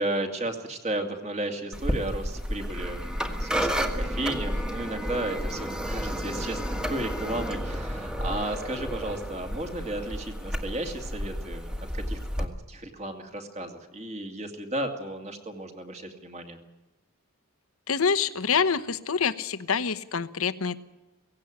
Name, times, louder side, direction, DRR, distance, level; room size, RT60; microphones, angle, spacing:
voice 1, 0.0-16.6, right 1 dB, 30° right, 4 dB, 2.5 m, -34 dB
sound 1, 1.7-12.4, equal, 5° right, 1.6 m, -31 dB
voice 2, 17.9-20.8, left 6 dB, 65° left, 12 dB, 0.9 m, -26 dB
17.5 x 16.5 x 10.0 m, 1.1 s
head